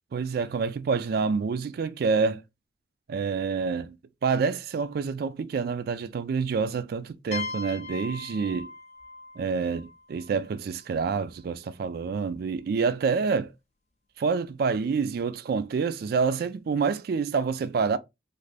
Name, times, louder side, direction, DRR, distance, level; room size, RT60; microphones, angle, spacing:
voice 1, 0.1-2.4 3.1-4.0 4.2-8.7 9.4-13.5 14.2-18.0, right 5 dB, 60° right, 0.3 m, -27 dB
sound 1, 7.3-10.9, left 4 dB, 40° left, 0.4 m, -39 dB
2.5 x 2.5 x 3.2 m
head